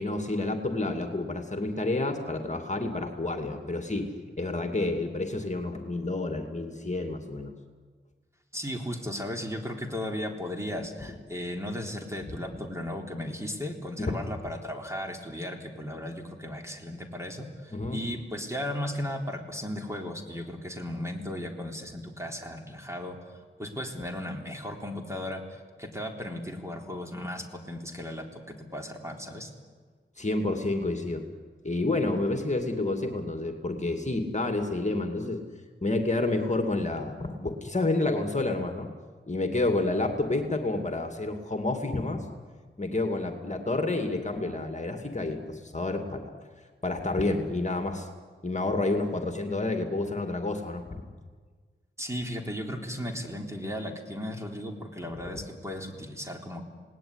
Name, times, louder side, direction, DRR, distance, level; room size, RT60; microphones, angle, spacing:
voice 1, 0.0-4.1 4.4-7.5 12.3-12.4 14.0-14.2 17.7-18.0 30.2-31.3 31.6-35.4 35.8-38.9 39.3-42.2 42.8-46.3 46.8-48.1 48.4-51.1 55.2-55.3, left 2 dB, 35° left, 4 dB, 2.4 m, -29 dB
voice 2, 8.5-29.5 52.0-56.6, left 1 dB, 15° right, 2 dB, 3.7 m, -36 dB
27.5 x 19.0 x 9.8 m, 1.5 s
wide cardioid pair, 65°, 21 cm